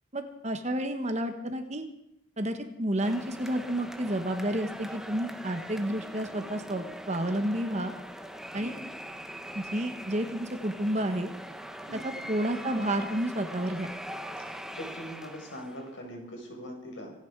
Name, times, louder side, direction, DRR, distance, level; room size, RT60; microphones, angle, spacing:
voice 1, 0.1-1.8 2.4-7.9 8.5-8.7 9.5-11.3 12.0-13.9, right 1 dB, 35° right, 7 dB, 1.4 m, -30 dB
sound 1, 3.0-15.9, equal, ahead, 0.9 m, -42 dB
voice 2, 14.8-17.1, equal, 75° left, 1 dB, 5.4 m, -41 dB
26.0 x 10.0 x 4.8 m, 0.84 s
head